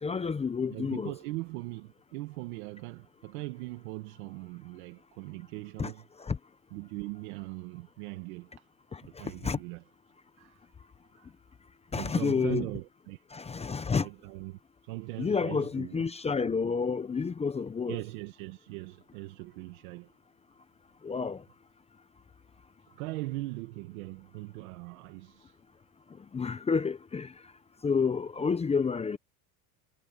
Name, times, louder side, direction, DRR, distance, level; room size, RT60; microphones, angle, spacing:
voice 1, 0.0-1.1 5.8-5.9 6.2-6.4 8.9-9.6 11.9-12.7 13.3-14.1 15.2-18.0 21.0-21.4 26.3-27.3 27.8-29.2, left 5 dB, 15° left, 0.7 m, -30 dB
voice 2, 0.7-6.0 6.7-8.5 9.0-9.8 10.4-10.6 11.2-11.3 11.9-13.4 14.0-16.0 17.9-20.1 23.0-25.5, right 20 dB, 90° right, 1.6 m, -40 dB
cardioid pair, 130°, 41 cm